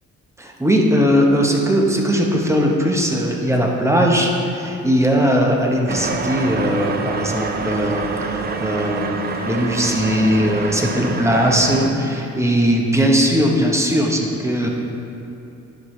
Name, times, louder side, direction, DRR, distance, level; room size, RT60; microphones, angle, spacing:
voice 1, 0.4-14.7, equal, 10° right, 0 dB, 0.9 m, -19 dB
sound 1, 5.9-11.9, right 3 dB, 30° right, 0.5 m, -26 dB
11.0 x 4.8 x 3.2 m, 2.8 s
cardioid pair, 90°, 30 cm